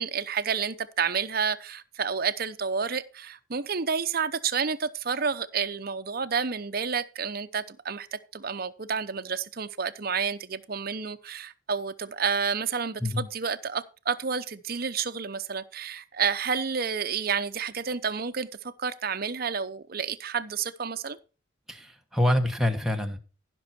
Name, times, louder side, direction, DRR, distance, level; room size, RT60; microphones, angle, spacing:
voice 1, 0.0-21.2, right 6 dB, 45° right, 0.7 m, -30 dB
voice 2, 21.7-23.2, left 1 dB, ahead, 1.3 m, -26 dB
15.0 x 6.2 x 4.3 m
head